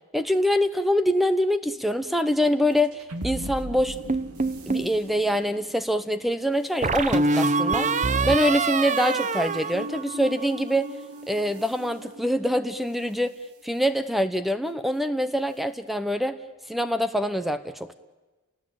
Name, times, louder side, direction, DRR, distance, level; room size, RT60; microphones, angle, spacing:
voice 1, 0.1-4.2 4.7-7.9 8.2-10.9 11.3-13.3 13.6-16.4 16.7-17.9, equal, ahead, 11 dB, 0.8 m, -25 dB
sound 1, 2.7-13.2, equal, 75° right, 2.8 m, -41 dB
sound 2, 4.1-4.9 6.8-10.5, right 3 dB, 35° right, 0.8 m, -25 dB
30.0 x 19.5 x 9.0 m, 1.2 s
head